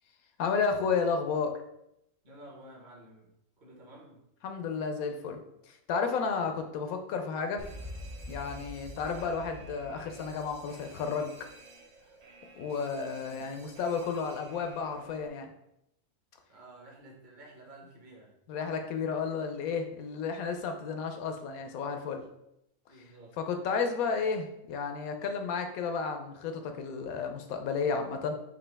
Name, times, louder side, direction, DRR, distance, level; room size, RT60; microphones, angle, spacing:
voice 1, 0.4-1.6 4.4-5.4 5.7-7.6 8.3-11.3 12.6-15.5 18.5-22.2 23.4-28.3, left 5 dB, 80° left, 5 dB, 1.1 m, -32 dB
voice 2, 2.2-3.3 3.6-4.2 6.4-6.6 9.0-9.3 13.1-13.5 16.5-18.3 22.9-23.4, right 1 dB, 35° right, -3 dB, 1.1 m, -52 dB
Alarm, 7.6-15.3, equal, 80° right, 0.3 m, -48 dB
5.1 x 2.8 x 3.4 m, 0.81 s
omnidirectional pair, 1.5 m